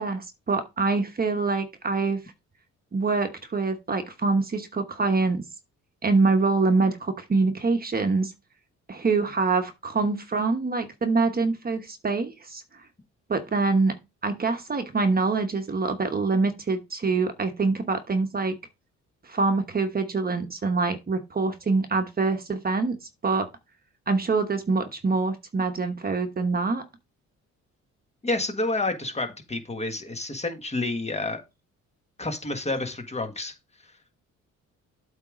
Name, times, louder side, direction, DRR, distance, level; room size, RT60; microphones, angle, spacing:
voice 1, 0.0-2.2 2.9-5.4 6.0-8.3 8.9-12.6 13.3-14.0 14.2-18.6 19.2-23.0 23.2-23.5 24.1-26.8, right 3 dB, 30° right, 1.1 m, -25 dB
voice 2, 28.2-31.4 32.2-34.1, left 2 dB, 20° left, 1.6 m, -30 dB
8.1 x 3.6 x 5.0 m
cardioid pair, 90°, 30 cm